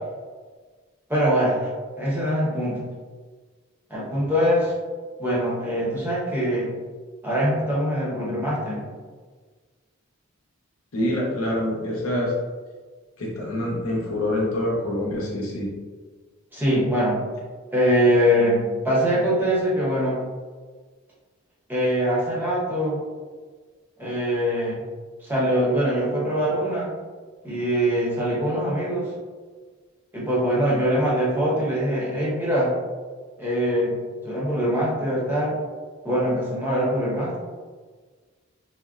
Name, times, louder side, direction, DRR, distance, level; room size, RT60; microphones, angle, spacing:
voice 1, 1.1-1.7 2.0-2.8 3.9-4.7 5.2-6.7 7.2-8.8 16.5-17.2 17.7-20.2 21.7-23.0 24.0-24.8 25.2-26.9 27.4-29.1 30.1-32.7 33.4-33.9 34.2-35.6 36.0-37.4, equal, 10° right, -6 dB, 0.6 m, -23 dB
voice 2, 10.9-12.3 13.2-15.7, left 1 dB, 80° left, -3 dB, 0.8 m, -26 dB
3.5 x 2.1 x 2.3 m, 1.5 s
head